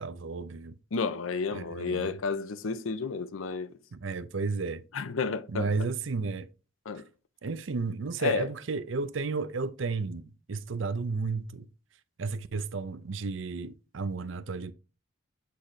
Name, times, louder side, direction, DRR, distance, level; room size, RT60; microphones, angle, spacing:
voice 1, 0.0-0.7 1.5-2.2 3.9-4.8 5.5-6.5 7.4-11.7 12.2-14.7, right 4 dB, 65° right, 0.5 m, -33 dB
voice 2, 0.9-3.7 4.9-5.7 6.9-7.0 8.2-8.5, left 4 dB, 75° left, 0.6 m, -31 dB
8.4 x 4.0 x 3.2 m
head